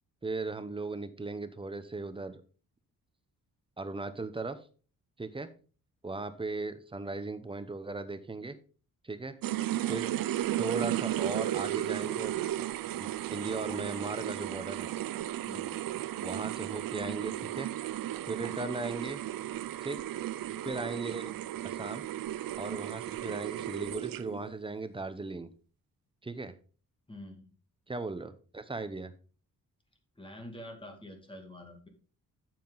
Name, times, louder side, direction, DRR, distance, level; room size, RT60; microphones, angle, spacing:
voice 1, 0.2-2.4 3.8-4.6 5.2-5.5 6.0-8.6 9.0-9.4 9.9-10.1 10.6-12.4 13.0-14.9 16.2-17.7 18.2-19.2 19.8-20.0 20.6-21.3 21.6-22.0 22.6-25.5 26.2-26.6 27.9-29.1, right 3 dB, 15° right, 11 dB, 0.8 m, -37 dB
sound 1, 9.4-24.5, right 13 dB, 75° right, 0.6 m, -34 dB
voice 2, 15.4-15.9 27.1-27.5 30.2-31.9, left 1 dB, 15° left, 3 dB, 2.2 m, -47 dB
9.1 x 7.6 x 3.9 m, 0.40 s
wide cardioid pair, 140°, 35 cm